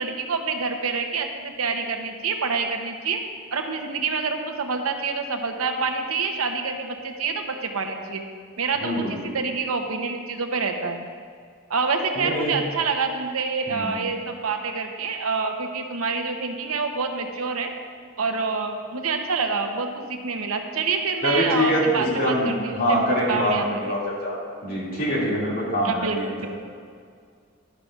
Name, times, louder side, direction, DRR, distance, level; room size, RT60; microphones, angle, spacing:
voice 1, 0.0-3.2 3.5-8.2 8.6-11.0 11.7-17.7 18.2-23.8 25.8-26.5, right 4 dB, 85° right, 4 dB, 0.8 m, -27 dB
voice 2, 8.8-9.1 12.2-12.6 13.7-13.9 21.2-26.5, equal, 45° left, -5 dB, 2.4 m, -24 dB
12.0 x 10.5 x 2.5 m, 2.1 s
head